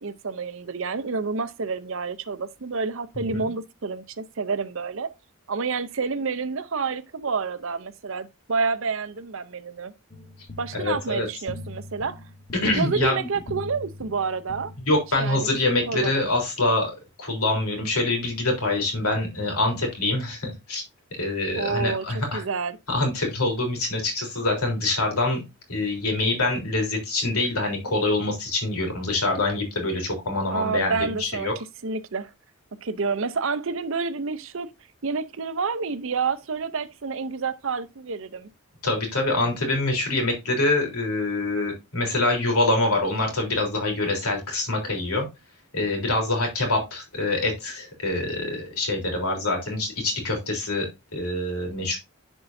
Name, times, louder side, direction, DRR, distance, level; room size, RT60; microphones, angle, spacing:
voice 1, 0.0-5.1 5.5-9.9 10.6-12.2 12.7-14.7 15.2-15.5 15.9-16.3 21.6-22.1 22.3-22.8 30.5-32.3 32.8-34.7 35.0-38.5, right 4 dB, 65° right, 0.6 m, -29 dB
sound 1, 10.1-15.4, left 2 dB, 35° left, 0.8 m, -42 dB
voice 2, 10.8-11.3 12.6-13.3 14.8-20.8 21.2-22.4 22.9-25.4 25.7-31.5 38.8-45.3 45.7-52.0, left 2 dB, 90° left, 3.5 m, -25 dB
11.0 x 4.6 x 2.6 m
head